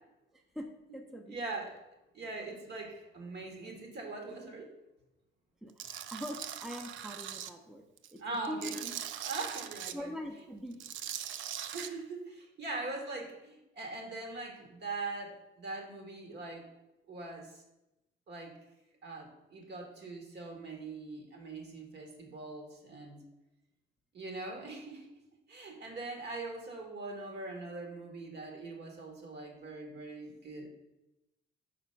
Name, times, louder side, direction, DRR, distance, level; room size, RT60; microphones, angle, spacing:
voice 1, 0.3-1.4 5.6-7.8 8.1-8.2 8.5-8.8 9.9-10.8, equal, ahead, 3 dB, 0.7 m, -42 dB
voice 2, 1.3-1.8 2.1-4.7 8.2-9.0 9.2-10.2 11.7-16.7 17.1-17.6 18.3-18.5 19.0-23.2 24.1-25.1 25.5-30.7, right 3 dB, 60° right, 2 dB, 1.7 m, -42 dB
Tools, 5.8-7.5 8.0-9.9 10.7-11.9, right 10 dB, 75° right, 0.4 m, -41 dB
5.1 x 4.2 x 5.7 m, 0.94 s
cardioid pair, 90°, 20 cm